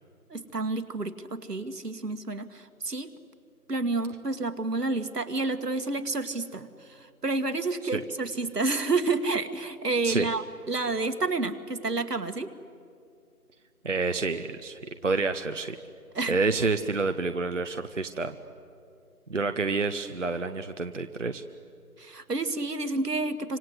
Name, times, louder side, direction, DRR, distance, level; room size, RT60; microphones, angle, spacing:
voice 1, 0.3-3.1 3.7-12.5 16.1-16.4 22.0-23.6, right 3 dB, 80° right, 9 dB, 2.0 m, -30 dB
voice 2, 13.8-15.8 16.3-18.4 19.3-21.4, right 3 dB, 50° right, 9 dB, 0.9 m, -28 dB
28.0 x 26.0 x 8.0 m, 2.5 s
figure-of-eight pair, 175°, 47 cm